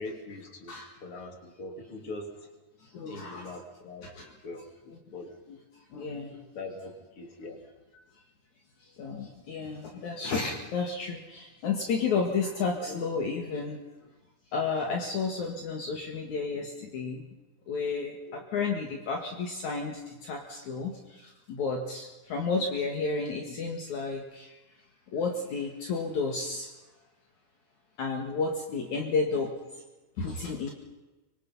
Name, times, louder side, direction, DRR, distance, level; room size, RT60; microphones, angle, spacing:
voice 1, 0.0-0.8 1.0-2.5 3.1-4.1 4.4-4.6 5.1-5.3 6.5-7.6, left 2 dB, 40° left, 3 dB, 3.9 m, -41 dB
voice 2, 2.8-3.6 4.0-4.3 4.9-5.0 5.5-5.6 5.9-6.4 8.8-13.8 14.5-17.2 17.7-24.6 25.1-26.7 28.0-29.5 30.2-30.7, left 4 dB, 60° left, 2 dB, 3.3 m, -32 dB
25.0 x 25.0 x 5.6 m, 1.1 s
omnidirectional pair, 3.8 m